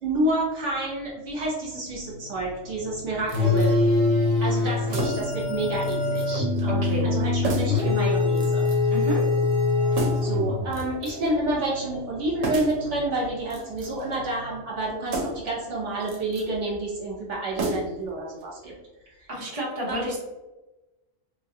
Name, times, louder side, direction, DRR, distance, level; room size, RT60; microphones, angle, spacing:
voice 1, 0.0-3.7 4.4-8.6 9.9-18.7 19.9-20.1, right 2 dB, 70° right, -4 dB, 1.2 m, -29 dB
sound 1, 1.6-17.2, left 1 dB, 70° left, 1.1 m, -41 dB
sound 2, 3.3-10.8, left 3 dB, 25° left, 1.5 m, -23 dB
sound 3, 3.3-3.7 4.9-5.4 5.8-6.3 6.6-6.7 7.4-7.9 8.4-8.9 9.9-10.4 10.7-11.3 12.4-12.8 13.4-14.1 15.1-15.5 16.0-16.5 17.6-18.1 18.4-18.5, right 2 dB, 85° right, 1.0 m, -32 dB
voice 2, 6.7-7.0 8.9-9.2 19.3-20.2, equal, 30° right, -5 dB, 1.0 m, -30 dB
3.5 x 2.3 x 2.8 m, 1.1 s
omnidirectional pair, 1.3 m